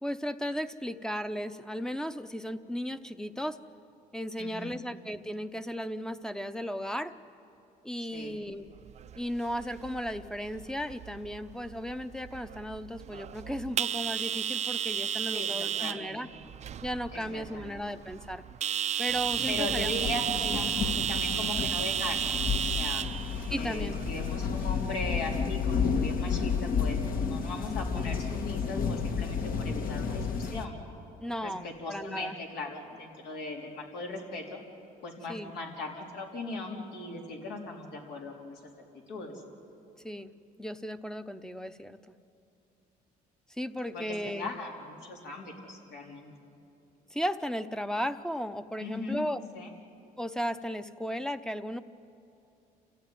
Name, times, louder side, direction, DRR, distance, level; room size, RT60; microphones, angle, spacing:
voice 1, 0.0-3.6 4.1-7.1 7.8-8.6 9.2-16.3 16.8-18.4 19.0-19.9 20.5-20.6 23.5-24.0 31.2-32.3 35.3-35.5 40.0-40.3 40.6-42.1 43.6-44.5 47.1-49.4 50.2-51.8, equal, 5° left, 11 dB, 0.7 m, -35 dB
voice 2, 4.4-4.8 8.1-8.4 15.3-16.2 17.1-17.8 19.5-23.0 23.5-30.7 31.4-34.6 35.0-38.6 39.1-39.4 43.9-46.3 48.8-49.2 49.5-49.7, left 2 dB, 80° left, 0 dB, 3.9 m, -39 dB
sound 1, 8.7-24.9, right 9 dB, 40° right, 0.5 m, -34 dB
sound 2, 19.1-30.6, left 6 dB, 60° left, 1.5 m, -31 dB
28.0 x 15.0 x 9.4 m, 2.7 s
cardioid pair, 110°, 17 cm